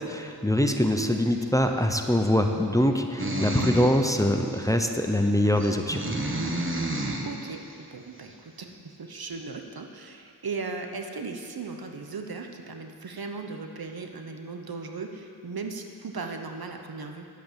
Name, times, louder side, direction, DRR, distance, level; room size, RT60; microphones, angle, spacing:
voice 1, 0.0-6.0, left 1 dB, 10° left, 4 dB, 0.8 m, -23 dB
voice 2, 0.6-1.0 7.2-17.3, right 4 dB, 65° right, 4 dB, 1.0 m, -37 dB
sound 1, 3.2-4.0 4.5-4.6 5.6-7.3, right 1 dB, 30° right, 1.3 m, -29 dB
10.5 x 8.4 x 7.5 m, 2.5 s
wide cardioid pair, 50°, 39 cm